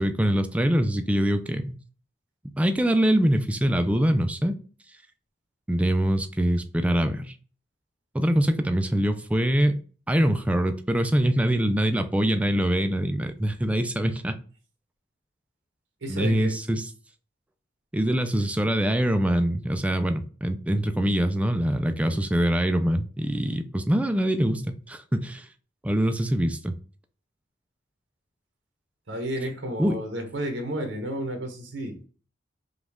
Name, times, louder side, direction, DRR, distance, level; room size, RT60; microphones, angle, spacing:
voice 1, 0.0-1.7 2.6-4.6 5.7-7.4 8.1-9.8 10.1-14.3 16.1-16.8 17.9-25.5 25.8-26.7 29.8-30.0, right 1 dB, 5° right, 0.3 m, -24 dB
voice 2, 16.0-16.6 22.0-22.2 29.1-32.0, right 1 dB, 80° right, 1.0 m, -32 dB
5.0 x 2.4 x 3.5 m
head